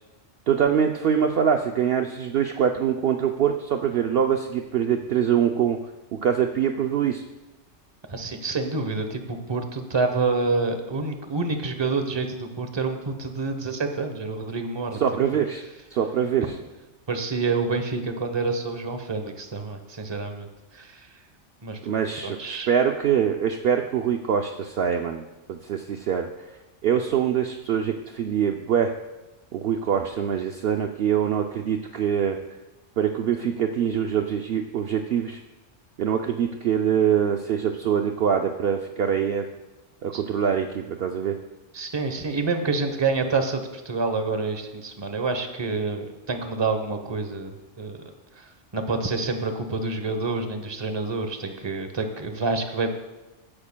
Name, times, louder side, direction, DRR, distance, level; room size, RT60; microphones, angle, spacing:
voice 1, 0.5-5.8 6.2-7.2 15.0-15.6 15.9-16.4 21.8-26.3 26.8-28.9 29.5-32.4 33.0-35.4 36.0-39.5 40.0-41.4, right 8 dB, 60° right, 4 dB, 0.7 m, -24 dB
voice 2, 8.1-15.0 17.1-20.5 20.7-21.1 21.6-21.8 22.2-22.7 40.1-40.2 41.7-48.0 48.4-48.5 48.7-52.9, right 3 dB, 25° right, 6 dB, 0.8 m, -27 dB
15.5 x 10.0 x 2.2 m, 1.1 s
omnidirectional pair, 1.3 m